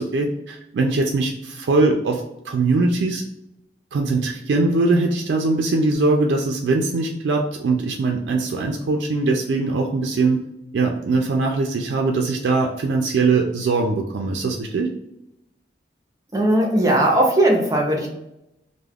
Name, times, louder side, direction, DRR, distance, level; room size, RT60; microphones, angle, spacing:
voice 1, 0.0-3.2 3.9-10.4 10.7-14.9, right 3 dB, 85° right, 1 dB, 0.3 m, -21 dB
voice 2, 16.3-18.1, right 1 dB, 20° right, -1 dB, 0.5 m, -18 dB
2.3 x 2.1 x 3.3 m, 0.86 s
head